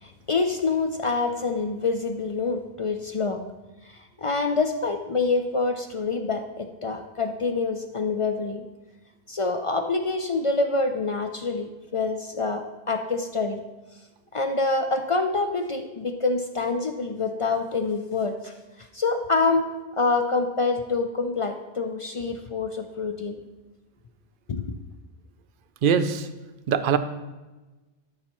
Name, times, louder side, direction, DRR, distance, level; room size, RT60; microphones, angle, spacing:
voice 1, 0.0-3.4 3.8-8.6 9.3-13.6 14.3-19.6 19.9-23.4 24.5-24.6, left 3 dB, 50° left, 5 dB, 0.4 m, -26 dB
voice 2, 25.8-26.3 26.7-27.0, right 7 dB, 65° right, 11 dB, 0.7 m, -21 dB
12.5 x 5.5 x 3.0 m, 1.1 s
omnidirectional pair, 1.0 m